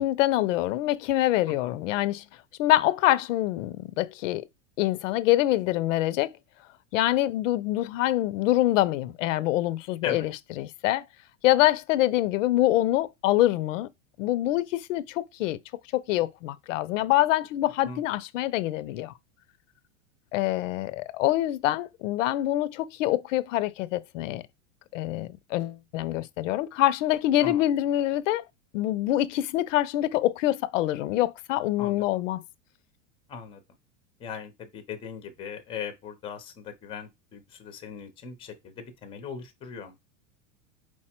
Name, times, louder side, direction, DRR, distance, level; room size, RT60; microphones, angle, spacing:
voice 1, 0.0-2.2 2.6-4.5 4.8-6.4 6.9-10.3 10.6-11.0 11.4-13.9 14.2-15.6 15.9-19.1 20.3-24.4 24.9-28.4 28.7-32.4, left 15 dB, 85° left, 0.5 m, -25 dB
voice 2, 33.3-33.6 34.2-40.0, left 6 dB, 15° left, 0.5 m, -39 dB
4.6 x 2.2 x 4.3 m
supercardioid pair, 150°, 37 cm